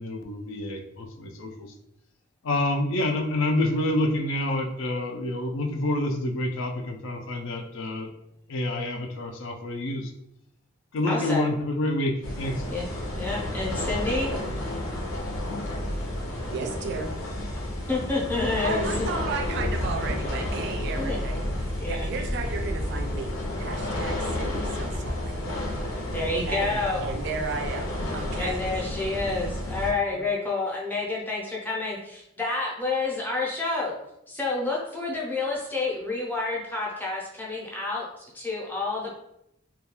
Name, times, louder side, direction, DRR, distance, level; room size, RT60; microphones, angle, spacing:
voice 1, 0.0-1.7 2.4-8.1 8.5-10.1 10.9-12.7, left 1 dB, 65° left, 4 dB, 0.4 m, -28 dB
voice 2, 11.1-11.5 12.7-12.9 13.2-14.3 17.9-18.9 21.0-21.2 21.8-22.1 26.1-27.0 28.4-33.9 34.3-39.1, left 3 dB, 10° left, -4 dB, 0.5 m, -29 dB
sound 1, 12.2-29.9, left 1 dB, 90° left, 0.7 m, -31 dB
voice 3, 16.5-17.1 18.6-25.4 26.5-28.6 30.1-30.2, right 4 dB, 55° right, 4 dB, 0.3 m, -34 dB
2.3 x 2.2 x 2.9 m, 0.81 s
head